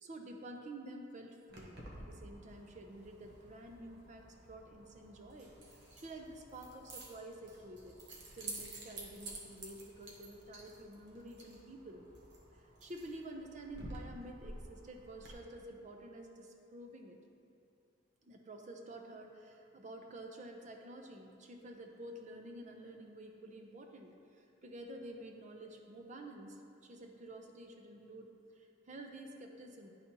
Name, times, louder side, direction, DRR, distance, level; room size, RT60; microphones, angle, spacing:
voice 1, 0.0-5.5 6.0-7.9 8.3-12.1 12.5-17.2 18.2-28.3 28.6-29.9, right 1 dB, 40° right, 3 dB, 0.6 m, -50 dB
Keys jangling, 1.5-15.3, right 2 dB, 65° right, 1.0 m, -51 dB
10.5 x 4.0 x 2.9 m, 2.5 s
head